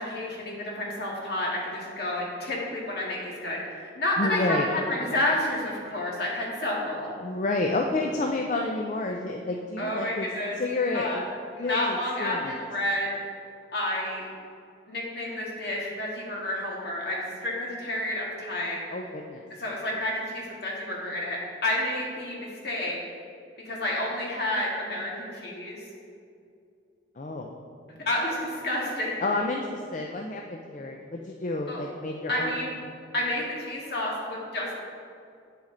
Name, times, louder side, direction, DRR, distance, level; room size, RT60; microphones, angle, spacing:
voice 1, 0.0-7.1 9.8-10.6 10.9-11.2 11.6-13.1 13.7-14.3 14.9-18.9 19.6-23.0 23.6-25.8 28.0-29.2 31.7-31.8 32.3-32.7 33.1-34.7, left 1 dB, 60° left, -3 dB, 1.9 m, -30 dB
voice 2, 4.2-4.7 7.2-10.3 10.6-11.2 11.6-12.5 18.9-19.4 27.2-27.6 29.2-32.7, left 2 dB, 40° left, 1 dB, 0.5 m, -30 dB
8.6 x 7.3 x 3.8 m, 2.4 s
head